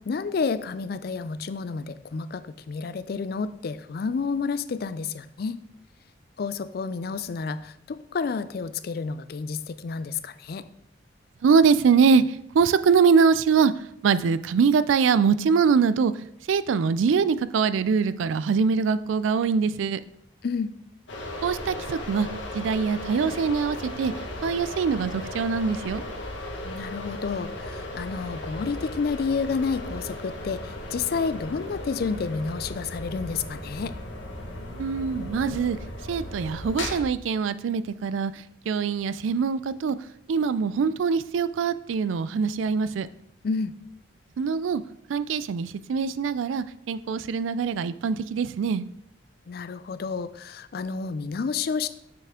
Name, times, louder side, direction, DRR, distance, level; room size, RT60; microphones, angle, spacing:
voice 1, 0.1-5.6 6.4-10.6 20.4-20.7 26.6-30.6 30.9-33.9 43.4-43.7 49.5-51.9, left 5 dB, 50° left, 14 dB, 0.4 m, -30 dB
voice 2, 11.4-20.0 21.4-22.3 22.5-24.1 24.4-26.0 34.6-35.8 36.1-40.0 40.3-43.1 44.4-44.8 45.1-48.9, right 5 dB, 80° right, 15 dB, 0.3 m, -23 dB
sound 1, 21.1-37.0, left 1 dB, 70° left, 1.4 m, -36 dB
6.8 x 6.7 x 3.6 m, 0.75 s
head